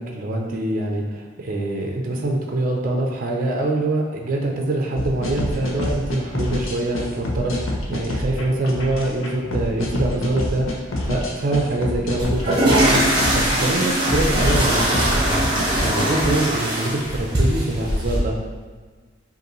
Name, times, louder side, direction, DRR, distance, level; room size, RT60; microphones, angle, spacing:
voice 1, 0.0-13.0 13.3-15.4 15.8-18.4, right 2 dB, 45° right, 0 dB, 0.5 m, -24 dB
sound 1, 5.0-16.4, left 1 dB, 80° left, 0.7 m, -27 dB
sound 2, 12.2-18.2, right 1 dB, 25° right, 1.0 m, -21 dB
5.2 x 2.6 x 3.0 m, 1.4 s
head